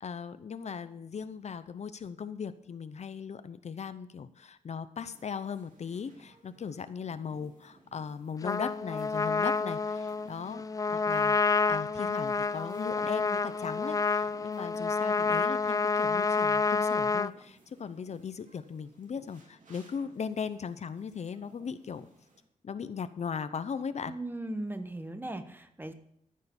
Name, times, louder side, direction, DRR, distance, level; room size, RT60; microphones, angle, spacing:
voice 1, 0.0-10.6 10.9-22.1 22.6-24.1, left 6 dB, 55° left, 12 dB, 0.7 m, -38 dB
sound 1, 5.0-22.4, right 2 dB, 70° right, 3.7 m, -60 dB
Trumpet, 8.4-17.3, left 4 dB, 25° left, 0.4 m, -28 dB
voice 2, 24.1-25.9, right 1 dB, 15° right, 9 dB, 1.1 m, -38 dB
14.0 x 6.5 x 7.1 m, 0.71 s
wide cardioid pair, 115°, 14 cm